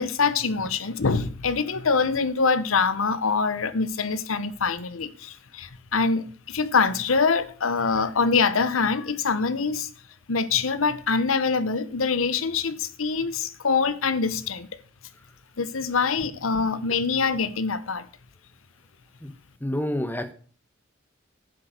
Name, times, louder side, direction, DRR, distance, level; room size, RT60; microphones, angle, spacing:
voice 1, 0.0-9.9 10.3-14.7 15.6-18.1, left 4 dB, 85° left, 0.9 m, -24 dB
voice 2, 19.6-20.3, left 1 dB, 10° left, 1.1 m, -28 dB
10.5 x 7.5 x 6.5 m
head